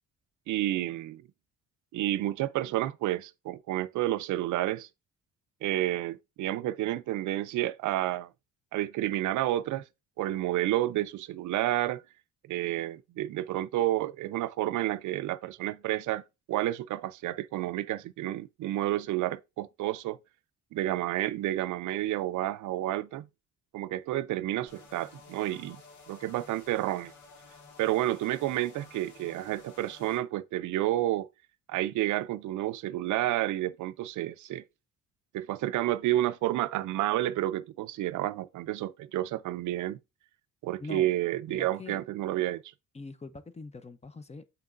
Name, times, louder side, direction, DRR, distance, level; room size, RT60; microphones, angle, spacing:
voice 1, 0.5-1.2 1.9-4.9 5.6-8.3 8.7-9.9 10.2-12.0 12.5-20.2 20.7-23.3 23.7-25.8 26.1-27.1 27.8-31.3 31.7-34.6 35.3-40.0 40.6-42.7, right 14 dB, 80° right, 0.5 m, -30 dB
sound 1, 24.7-30.2, left 4 dB, 70° left, 1.8 m, -53 dB
voice 2, 40.8-41.1 41.5-42.0 42.9-44.5, left 3 dB, 20° left, 0.8 m, -43 dB
6.9 x 5.7 x 2.6 m
cardioid pair, 90°, 30 cm